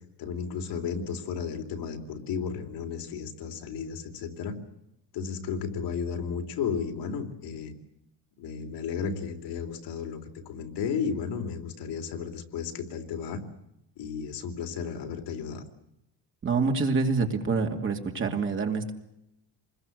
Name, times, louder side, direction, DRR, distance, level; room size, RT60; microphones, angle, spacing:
voice 1, 0.2-4.6 5.1-7.7 8.4-10.2 10.5-13.4 14.0-15.6, left 6 dB, 70° left, 4 dB, 3.5 m, -33 dB
voice 2, 16.4-18.9, right 4 dB, 30° right, 3 dB, 2.5 m, -26 dB
27.5 x 21.5 x 8.0 m, 0.85 s
cardioid pair, 180°, 43 cm